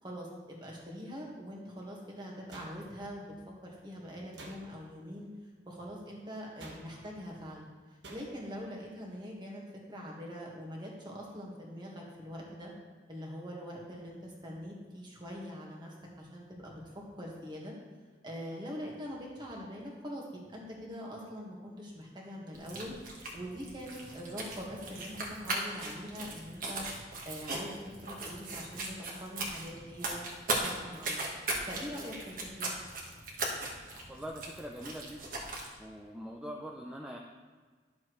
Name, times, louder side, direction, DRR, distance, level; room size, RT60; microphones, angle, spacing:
voice 1, 0.0-3.3 3.6-5.3 5.7-7.7 8.1-9.6 9.9-12.7 13.1-16.8 17.1-17.7 18.2-22.9 23.3-26.9 27.2-28.9 29.2-30.2 30.6-31.3 31.7-32.7, equal, 25° right, -2 dB, 1.7 m, -43 dB
sound 1, 2.5-3.2 4.3-5.0 6.6-7.2 8.0-8.6, right 2 dB, 90° right, 1.2 m, -50 dB
sound 2, 22.5-35.7, right 2 dB, 50° right, 1.5 m, -38 dB
voice 2, 34.1-35.5 35.8-37.2, equal, 5° right, -1 dB, 0.5 m, -43 dB
11.0 x 7.1 x 3.2 m, 1.5 s
head